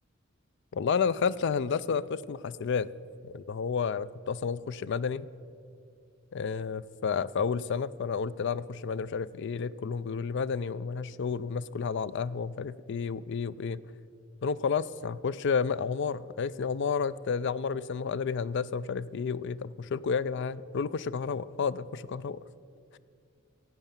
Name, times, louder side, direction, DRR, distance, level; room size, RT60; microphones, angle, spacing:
voice 1, 0.7-2.9 3.2-5.3 6.3-13.8 14.4-22.4 22.9-23.0, left 6 dB, 60° left, 17 dB, 0.4 m, -31 dB
16.5 x 7.9 x 7.3 m, 2.3 s
head